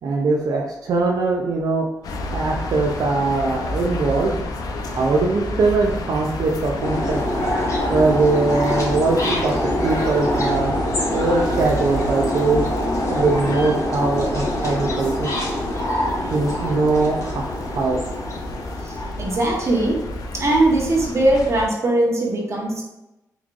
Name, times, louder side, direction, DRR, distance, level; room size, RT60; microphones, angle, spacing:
voice 1, 0.0-1.9 2.3-4.3 4.9-7.2 7.9-9.5 9.8-10.7 11.1-12.6 13.1-15.3 16.3-18.0, right 3 dB, 70° right, -1 dB, 0.5 m, -21 dB
sound 1, 2.0-21.7, left 1 dB, 70° left, 0.5 m, -30 dB
sound 2, 6.8-19.7, left 1 dB, 50° left, 1.1 m, -25 dB
voice 2, 18.8-20.1 20.3-22.8, right 1 dB, 45° right, -1 dB, 1.1 m, -20 dB
3.7 x 3.1 x 2.4 m, 0.93 s
cardioid pair, 75°, 7 cm